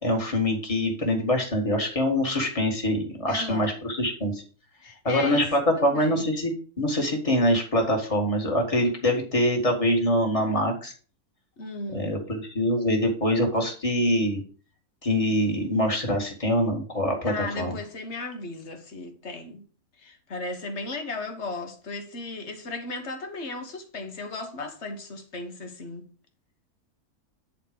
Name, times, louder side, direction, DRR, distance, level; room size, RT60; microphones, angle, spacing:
voice 1, 0.0-4.4 5.0-10.9 11.9-14.4 15.0-17.8, left 1 dB, 20° left, 2.1 m, -24 dB
voice 2, 3.3-3.8 4.8-5.4 5.8-6.3 11.6-12.2 17.2-19.7 20.0-26.1, left 3 dB, 50° left, 1.7 m, -35 dB
9.9 x 4.4 x 5.2 m
omnidirectional pair, 1.6 m